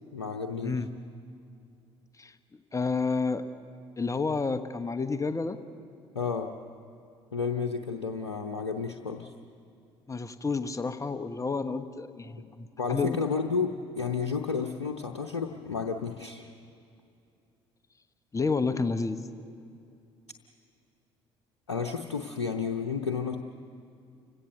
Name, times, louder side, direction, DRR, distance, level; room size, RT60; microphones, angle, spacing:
voice 1, 0.1-0.8 6.1-6.5 7.3-9.3 12.8-16.5 21.7-23.4, left 5 dB, 85° left, 3 dB, 0.8 m, -31 dB
voice 2, 2.7-3.4 4.0-5.6 10.1-13.2 18.3-19.2, left 4 dB, 20° left, 11 dB, 1.2 m, -30 dB
29.5 x 17.0 x 6.7 m, 2.5 s
figure-of-eight pair, 55°, 14 cm